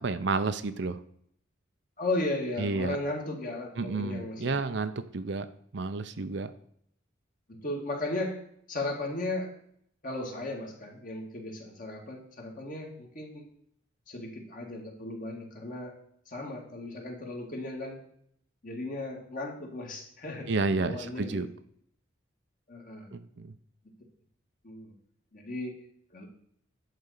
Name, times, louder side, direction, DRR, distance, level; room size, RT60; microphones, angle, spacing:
voice 1, 0.0-1.0 2.6-3.0 3.8-5.5 5.7-6.5 20.5-21.5 23.1-23.5, right 3 dB, 60° right, 11 dB, 0.6 m, -31 dB
voice 2, 2.0-4.6 7.5-9.5 10.0-13.5 14.1-16.0 16.3-18.0 18.6-20.5 20.8-21.4 22.7-23.1 24.6-24.9 25.3-25.8 26.1-26.3, left 2 dB, 45° left, 0 dB, 2.2 m, -36 dB
10.5 x 4.2 x 6.6 m, 0.67 s
head